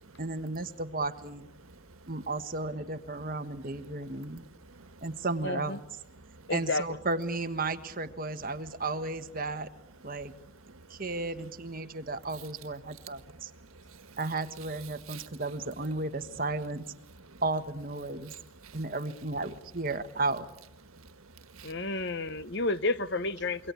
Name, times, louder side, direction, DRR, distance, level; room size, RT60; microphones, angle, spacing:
voice 1, 0.2-1.5 2.1-4.4 5.0-5.8 6.5-9.7 10.0-10.3 10.9-13.5 14.1-16.8 17.4-18.3 18.7-20.5, right 2 dB, 40° right, 1.4 m, -34 dB
voice 2, 4.7-5.0 6.2-6.5 10.7-11.0 13.3-14.2 15.1-15.3 17.2-17.4 18.3-18.8 20.9-22.0 22.4-22.5, right 5 dB, 85° right, 1.7 m, -51 dB
voice 3, 6.5-6.8 21.6-23.7, left 2 dB, 55° left, 1.0 m, -30 dB
27.0 x 24.0 x 8.4 m
head